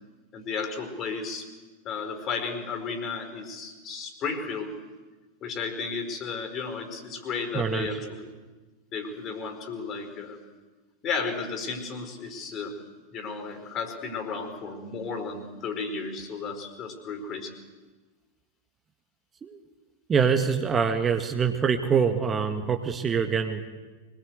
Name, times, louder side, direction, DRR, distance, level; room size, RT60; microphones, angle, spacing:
voice 1, 0.3-1.5 1.8-4.8 5.4-8.3 8.9-10.4 11.0-12.8 13.1-17.5, left 4 dB, 30° left, 7 dB, 4.7 m, -33 dB
voice 2, 7.5-8.0 19.4-19.6 20.1-23.7, right 6 dB, 20° right, 6 dB, 1.8 m, -25 dB
24.5 x 21.0 x 8.1 m, 1.3 s
figure-of-eight pair, 90°, 0 cm